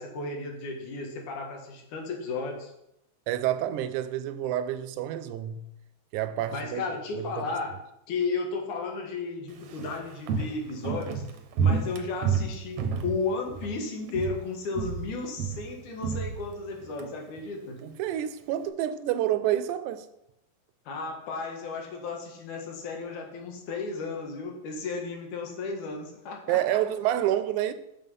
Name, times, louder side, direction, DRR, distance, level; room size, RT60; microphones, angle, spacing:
voice 1, 0.0-2.7 6.5-7.8 8.1-11.2 11.6-17.8 20.9-26.8 27.2-27.3, left 4 dB, 85° left, 2.9 m, -34 dB
voice 2, 3.3-5.7 6.1-6.8 7.2-7.3 17.8-20.1 26.5-27.7, right 12 dB, 85° right, 2.0 m, -28 dB
Walk footsteps, 9.5-13.8 14.1-14.5 14.7-17.1 17.4-17.5, right 6 dB, 70° right, 1.6 m, -30 dB
6.9 x 6.8 x 5.4 m
omnidirectional pair, 3.4 m